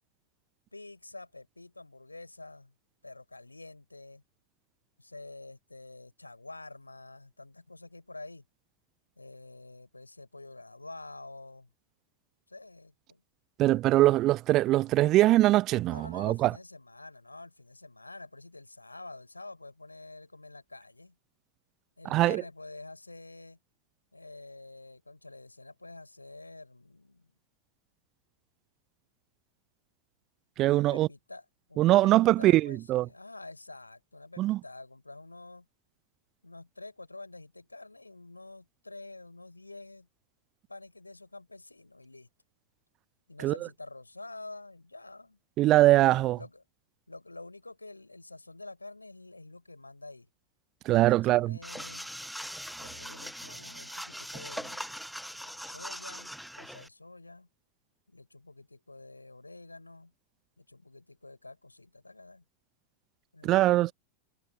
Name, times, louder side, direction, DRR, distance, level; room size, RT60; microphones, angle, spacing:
voice 1, 0.7-2.7 3.0-4.2 5.0-8.4 9.2-11.7 12.5-13.2 15.9-21.2 22.0-23.6 24.1-27.3 30.7-35.7 36.4-40.1 40.7-42.3 43.3-45.4 46.0-46.6 47.1-50.3 50.9-52.1 52.8-54.9 55.3-57.5 58.1-60.1 60.6-62.4 63.3-63.9, left 2 dB, 85° left, 5.6 m, -48 dB
voice 2, 13.6-16.5 22.1-22.4 30.6-31.1 31.8-33.1 34.4-34.6 43.4-43.5 45.6-46.4 50.9-51.6 63.4-63.9, right 16 dB, 35° right, 0.5 m, -22 dB
sound 1, 51.6-56.9, equal, ahead, 1.4 m, -41 dB
figure-of-eight pair, 90°, 0 cm